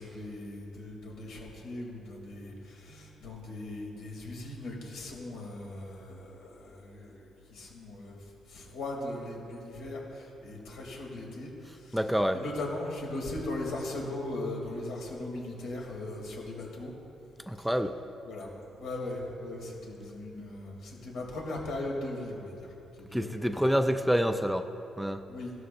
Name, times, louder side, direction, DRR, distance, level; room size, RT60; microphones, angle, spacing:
voice 1, 0.0-12.0 12.3-16.9 17.6-17.7 18.3-18.5 18.8-23.7 25.3-25.5, left 2 dB, 80° left, -2 dB, 3.0 m, -39 dB
voice 2, 11.9-12.4 17.5-18.0 23.1-25.2, equal, 5° right, 8 dB, 0.5 m, -27 dB
16.5 x 12.5 x 2.6 m, 2.8 s
cardioid pair, 90°, 0 cm